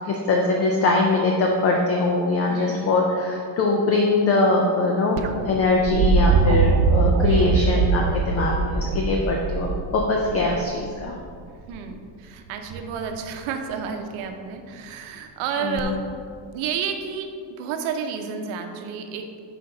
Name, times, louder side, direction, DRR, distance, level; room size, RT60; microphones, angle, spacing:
voice 1, 0.0-5.2 5.4-9.7 9.9-11.1 15.6-15.9, left 3 dB, 35° left, 0 dB, 0.4 m, -22 dB
voice 2, 2.5-2.9 7.2-7.6 11.7-16.0 16.5-19.4, right 6 dB, 90° right, 5 dB, 0.8 m, -31 dB
sound 1, 5.2-11.1 12.7-13.2 15.8-15.9, right 4 dB, 55° right, 0.5 m, -22 dB
5.9 x 5.1 x 3.8 m, 2.2 s
cardioid pair, 175°, 47 cm